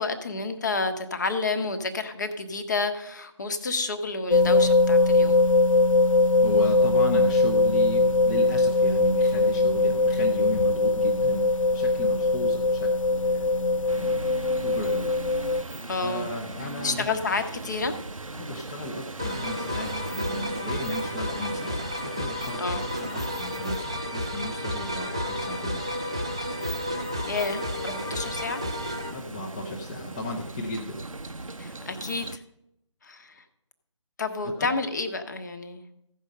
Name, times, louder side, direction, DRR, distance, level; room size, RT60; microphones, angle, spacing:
voice 1, 0.0-5.4 15.9-16.3 16.8-17.9 22.6-22.8 27.3-28.6 31.6-32.4 33.0-33.4 34.2-35.8, left 3 dB, 35° left, 8 dB, 1.0 m, -30 dB
sound 1, 4.3-15.6, left 2 dB, 80° left, 0.4 m, -21 dB
voice 2, 6.4-14.3 14.6-15.1 16.0-17.1 18.3-25.8 29.1-31.0 34.4-34.7, left 1 dB, 15° left, -2 dB, 0.7 m, -34 dB
sound 2, 13.9-32.4, right 3 dB, 85° right, 0.7 m, -39 dB
sound 3, 19.2-29.1, left 1 dB, 10° right, 0.3 m, -32 dB
15.0 x 5.4 x 6.5 m, 0.80 s
figure-of-eight pair, 155°, 17 cm